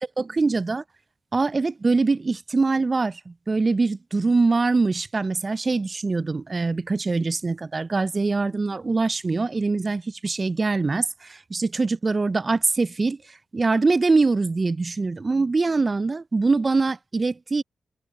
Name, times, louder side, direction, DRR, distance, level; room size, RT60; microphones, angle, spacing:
voice 1, 0.2-0.8 1.3-17.6, right 3 dB, 40° right, 0.4 m, -23 dB
supercardioid pair, 45°, 0 cm